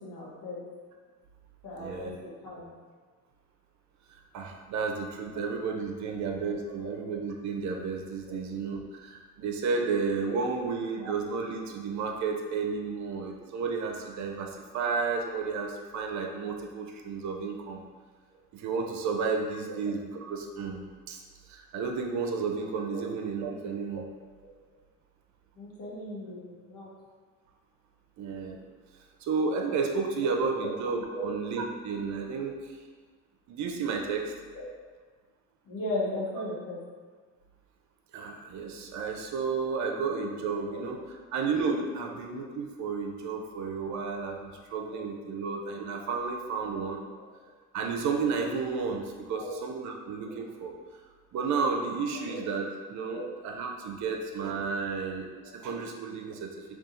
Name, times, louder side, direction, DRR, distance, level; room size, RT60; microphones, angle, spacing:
voice 1, 0.0-0.6 1.6-2.1 2.4-2.7 6.7-6.9 8.3-8.4 10.5-10.6 11.0-11.1 22.9-23.0 25.6-26.9 30.6-30.7 31.1-31.4 34.5-34.7 35.6-36.8 40.7-40.8 46.7-46.8 47.2-47.3 49.3-49.5 52.3-52.4 53.1-53.3 55.4-55.5, left 1 dB, 65° left, -5 dB, 1.0 m, -36 dB
voice 2, 1.8-2.2 4.3-17.8 18.5-20.0 20.3-20.8 21.1-21.2 21.5-24.0 28.2-28.6 29.2-32.7 33.5-34.2 38.1-41.0 41.3-47.0 47.7-50.7 51.3-55.3 55.5-56.6, right 5 dB, 50° right, 2 dB, 0.5 m, -32 dB
2.6 x 2.4 x 2.5 m, 1.5 s
hypercardioid pair, 55°, 36 cm